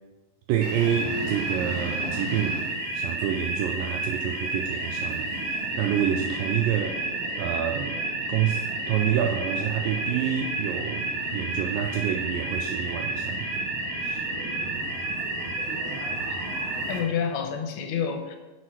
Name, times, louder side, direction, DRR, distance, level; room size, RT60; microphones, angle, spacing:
voice 1, 0.5-7.0 7.4-8.0 8.3-13.7 14.0-14.3 15.9-16.0, right 9 dB, 80° right, 2 dB, 2.0 m, -28 dB
sound 1, 0.6-17.0, right 2 dB, 65° right, 1.3 m, -30 dB
voice 2, 16.0-16.4 16.9-18.4, left 7 dB, 85° left, 6 dB, 2.6 m, -29 dB
7.7 x 6.1 x 5.9 m, 1.2 s
omnidirectional pair, 4.5 m